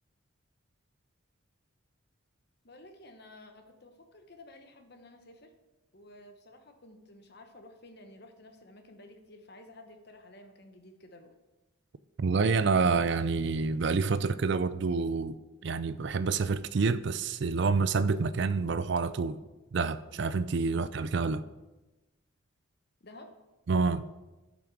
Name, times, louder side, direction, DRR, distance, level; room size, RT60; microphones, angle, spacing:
voice 1, 2.6-5.5 5.9-11.3 23.0-23.3, left 1 dB, 50° left, 1.0 m, -53 dB
voice 2, 12.2-15.4 15.6-19.4 19.7-21.4 23.7-24.1, right 4 dB, 55° right, 0.4 m, -28 dB
10.5 x 6.1 x 4.7 m
head